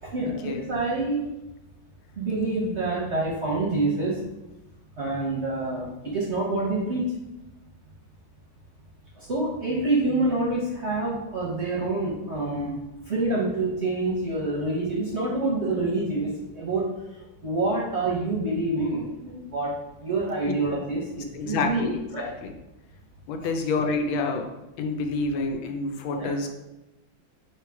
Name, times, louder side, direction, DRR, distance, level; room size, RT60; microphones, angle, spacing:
voice 1, 0.0-1.2 2.2-4.2 5.0-7.1 9.2-12.7 13.1-16.9 17.4-19.7 20.0-22.3 23.4-23.5 26.1-26.3, right 2 dB, 50° right, -5 dB, 0.9 m, -27 dB
voice 2, 21.3-22.5 23.3-24.5 24.8-26.5, left 3 dB, 85° left, 4 dB, 1.4 m, -28 dB
3.7 x 3.0 x 4.6 m, 0.98 s
omnidirectional pair, 2.1 m